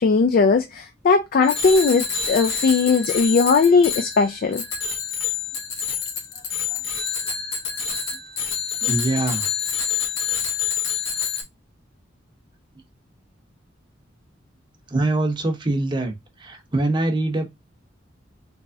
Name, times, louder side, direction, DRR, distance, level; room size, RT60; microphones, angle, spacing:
voice 1, 0.0-4.6, left 4 dB, 50° left, 0.3 m, -18 dB
Bicycle bell, 1.4-11.4, left 7 dB, 75° left, 0.9 m, -27 dB
voice 2, 8.8-9.5 14.9-17.5, right 2 dB, 25° right, 0.7 m, -24 dB
3.3 x 3.1 x 2.5 m
head